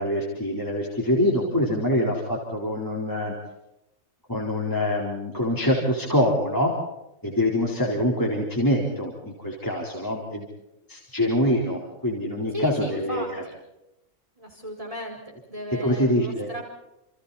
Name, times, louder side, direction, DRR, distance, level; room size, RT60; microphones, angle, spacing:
voice 1, 0.0-3.3 4.3-6.7 7.2-10.5 10.9-13.4 15.8-16.5, left 1 dB, 15° left, -3 dB, 4.3 m, -25 dB
voice 2, 12.5-13.6 14.4-15.2 15.5-16.6, equal, 25° right, 0 dB, 5.1 m, -35 dB
29.5 x 28.5 x 4.3 m, 0.92 s
omnidirectional pair, 1.5 m